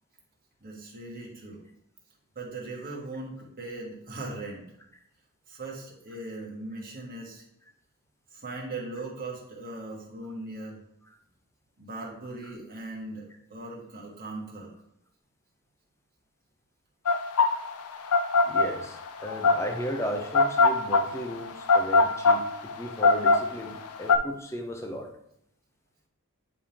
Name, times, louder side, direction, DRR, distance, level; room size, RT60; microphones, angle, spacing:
voice 1, 0.6-1.6 2.3-4.6 5.5-7.4 8.3-10.8 11.8-14.7, right 2 dB, 40° right, -2 dB, 1.6 m, -39 dB
sound 1, 17.1-24.2, left 3 dB, 80° left, 0.5 m, -22 dB
voice 2, 18.4-25.1, equal, 10° left, 3 dB, 0.7 m, -35 dB
9.8 x 3.5 x 2.9 m, 0.76 s
head